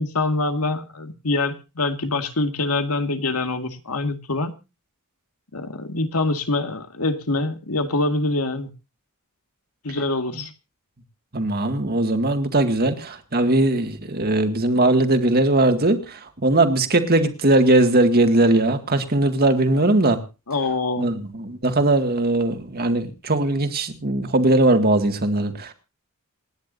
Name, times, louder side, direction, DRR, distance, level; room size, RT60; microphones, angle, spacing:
voice 1, 0.0-4.5 5.5-8.7 9.8-10.5 20.5-21.1, left 2 dB, 85° left, 2.0 m, -25 dB
voice 2, 11.3-20.2 21.0-25.7, right 2 dB, 45° right, 2.0 m, -20 dB
27.5 x 10.5 x 2.7 m
head